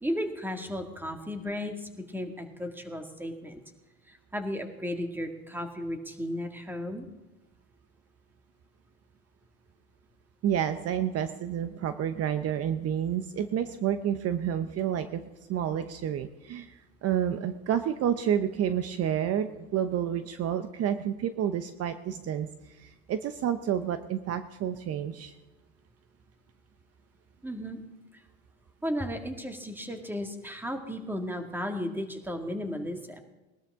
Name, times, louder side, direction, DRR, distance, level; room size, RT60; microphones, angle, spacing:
voice 1, 0.0-3.6 4.1-7.1 27.4-27.8 28.8-33.2, equal, 5° right, 5 dB, 2.1 m, -34 dB
voice 2, 10.4-15.2 15.5-22.5 22.8-25.3, right 9 dB, 50° right, 10 dB, 0.8 m, -29 dB
20.5 x 12.5 x 3.7 m, 1.1 s
supercardioid pair, 90°, 32 cm